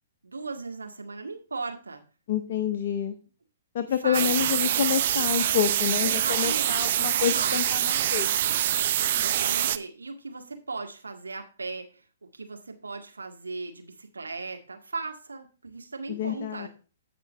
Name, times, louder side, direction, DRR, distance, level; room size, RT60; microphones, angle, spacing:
voice 1, 0.2-2.0 3.9-4.7 6.0-7.6 9.2-16.7, right 3 dB, 80° right, 4 dB, 1.8 m, -38 dB
voice 2, 2.3-3.1 3.7-8.4 16.1-16.7, left 9 dB, 45° left, 7 dB, 0.8 m, -28 dB
sound 1, 4.1-9.8, right 11 dB, 50° right, 0.6 m, -25 dB
15.5 x 5.2 x 3.3 m, 0.36 s
figure-of-eight pair, 120°, 0 cm